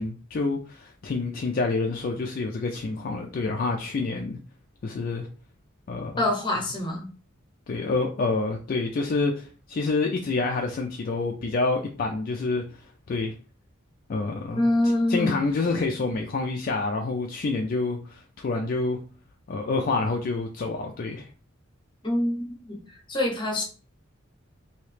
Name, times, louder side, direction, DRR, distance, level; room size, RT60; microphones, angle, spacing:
voice 1, 0.0-4.4 4.8-5.3 5.9-6.3 7.7-12.6 13.1-13.3 14.1-14.7 15.1-19.0 19.5-21.3, left 3 dB, 45° left, 0.3 m, -27 dB
voice 2, 6.2-7.1 14.6-15.4 22.0-22.8 23.1-23.6, left 1 dB, 25° left, 0.8 m, -25 dB
2.9 x 2.7 x 3.2 m
head